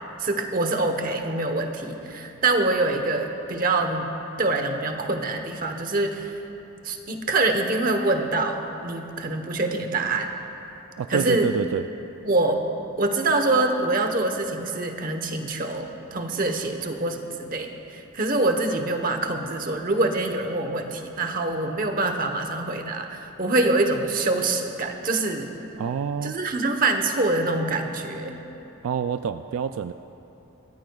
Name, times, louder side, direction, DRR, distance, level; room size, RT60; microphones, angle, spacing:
voice 1, 0.2-4.1 4.4-6.3 6.8-10.3 11.1-11.5 12.2-12.7 13.0-25.5 26.2-28.4, right 2 dB, 40° right, 5 dB, 1.0 m, -25 dB
voice 2, 11.0-11.8 25.8-26.4 28.8-29.9, right 7 dB, 85° right, 10 dB, 0.3 m, -27 dB
24.0 x 14.5 x 2.3 m, 3.0 s
head